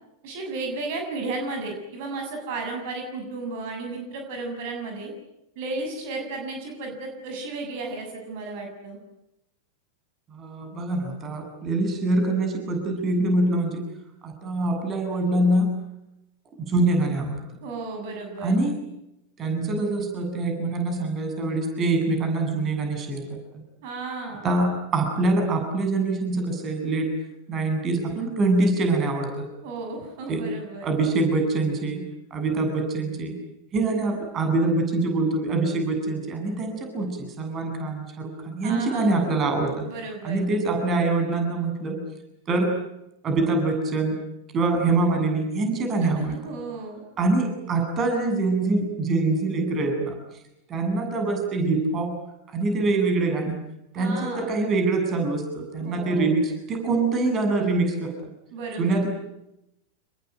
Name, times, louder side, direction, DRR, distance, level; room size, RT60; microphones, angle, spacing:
voice 1, 0.2-5.1 5.6-9.0 17.6-18.5 23.8-24.5 29.6-30.9 38.6-39.3 39.9-40.5 46.0-47.0 54.0-54.5 55.8-56.4 58.5-59.0, right 3 dB, 50° right, 3 dB, 7.0 m, -34 dB
voice 2, 10.3-13.9 14.2-15.7 16.6-17.4 18.4-18.7 19.4-23.3 24.4-27.1 27.5-29.4 30.3-30.4 30.8-33.4 33.7-39.8 40.2-42.0 42.5-42.8 43.2-44.2 44.5-46.3 47.2-50.1 50.7-52.1 52.5-53.6 53.9-58.3 58.8-59.1, right 2 dB, 30° right, 4 dB, 7.9 m, -24 dB
28.0 x 22.0 x 9.3 m, 0.88 s
figure-of-eight pair, 90°, 0 cm